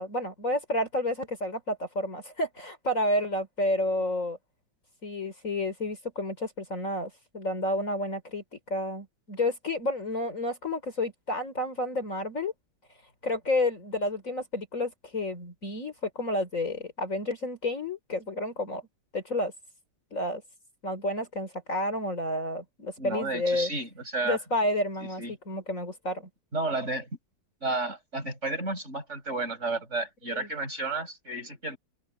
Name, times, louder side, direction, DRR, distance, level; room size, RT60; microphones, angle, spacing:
voice 1, 0.0-4.4 5.0-12.5 13.2-18.8 19.1-19.5 20.1-20.4 20.8-23.7 24.2-26.3 30.3-30.5, left 1 dB, 40° left, 3.9 m, -30 dB
voice 2, 23.0-24.4 25.2-25.3 26.5-27.1 27.6-31.8, right 2 dB, 35° right, 8.2 m, -32 dB
open air
omnidirectional pair, 2.1 m